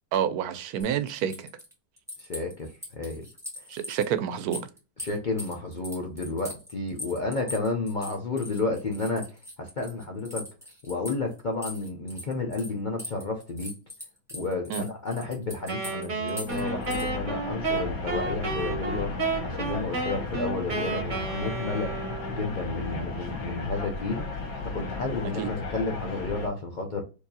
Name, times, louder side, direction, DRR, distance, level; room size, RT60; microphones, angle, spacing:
voice 1, 0.1-1.5 3.7-4.7 14.7-14.8 25.4-25.5, right 9 dB, 75° right, 1.0 m, -28 dB
sound 1, 0.8-4.0 4.4-12.7 13.0-17.1, left 1 dB, ahead, 1.4 m, -41 dB
voice 2, 2.2-3.3 5.0-10.5 10.9-13.7 14.3-19.1 19.4-22.0 22.3-24.3 24.6-27.0, left 3 dB, 50° left, 0.6 m, -31 dB
Wind instrument woodwind instrument, 15.7-22.5, right 3 dB, 35° right, 1.0 m, -32 dB
sound 2, 16.5-26.5, left 3 dB, 70° left, 1.5 m, -35 dB
4.6 x 2.8 x 2.7 m
omnidirectional pair, 1.6 m